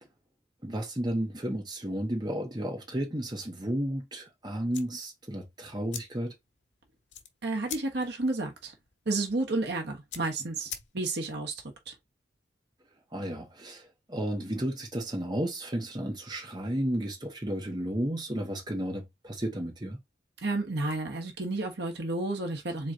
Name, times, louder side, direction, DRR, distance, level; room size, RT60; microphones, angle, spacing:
voice 1, 0.6-6.3 13.1-20.0, right 1 dB, 25° right, 1.3 m, -33 dB
sound 1, 4.7-11.3, left 9 dB, 85° left, 1.0 m, -46 dB
voice 2, 7.4-8.7 9.0-11.9 20.4-22.9, right 2 dB, 65° right, 1.3 m, -31 dB
4.1 x 3.1 x 3.8 m
head